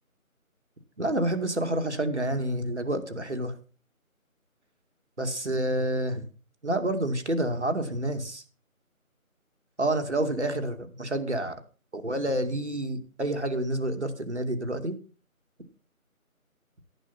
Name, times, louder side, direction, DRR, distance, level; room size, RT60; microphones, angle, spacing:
voice 1, 1.0-3.5 5.2-6.2 6.6-8.4 9.8-11.6 11.9-15.0, right 1 dB, 50° right, 7 dB, 2.5 m, -28 dB
13.5 x 11.0 x 4.3 m, 0.37 s
figure-of-eight pair, 170°, 43 cm